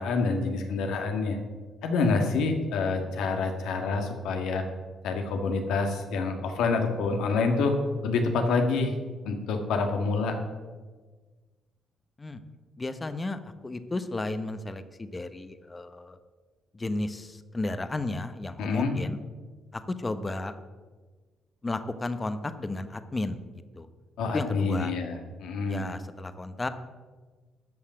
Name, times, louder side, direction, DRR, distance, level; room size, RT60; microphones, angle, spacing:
voice 1, 0.0-1.4 1.8-4.6 5.0-7.7 8.0-8.9 9.3-10.3 18.6-18.9 24.2-25.9, left 4 dB, 85° left, 4 dB, 1.8 m, -27 dB
voice 2, 12.8-16.2 16.7-19.2 19.7-20.5 21.6-23.4 23.7-23.9 24.3-24.9 25.7-26.7, left 2 dB, 25° left, 10 dB, 1.0 m, -33 dB
13.0 x 5.6 x 7.7 m, 1.4 s
cardioid pair, 90°, 0 cm